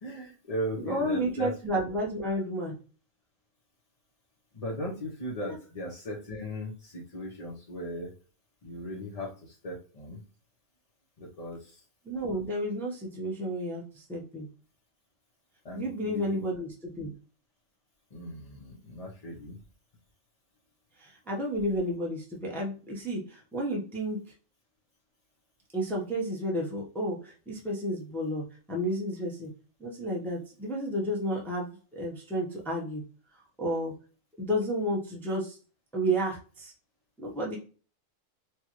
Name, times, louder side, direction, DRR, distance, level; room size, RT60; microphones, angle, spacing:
voice 1, 0.0-1.6 4.5-8.1 8.6-10.2 11.2-11.8 15.6-16.4 18.1-19.6, equal, 35° left, -5 dB, 0.8 m, -37 dB
voice 2, 0.8-2.7 12.0-14.5 15.7-17.1 21.0-24.2 25.7-29.5 29.8-33.0 33.6-33.9 34.4-35.6 35.9-36.7 37.2-37.6, equal, ahead, -2 dB, 0.8 m, -31 dB
4.4 x 2.4 x 3.0 m, 0.36 s
omnidirectional pair, 1.4 m